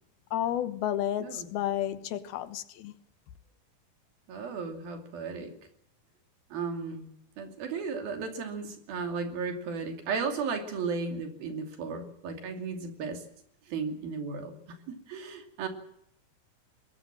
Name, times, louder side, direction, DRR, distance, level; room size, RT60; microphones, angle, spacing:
voice 1, 0.3-2.9, left 11 dB, 90° left, 3.2 m, -31 dB
voice 2, 4.3-5.5 6.5-13.2 13.7-15.7, right 5 dB, 80° right, 4.5 m, -35 dB
21.5 x 21.0 x 7.5 m
omnidirectional pair, 4.2 m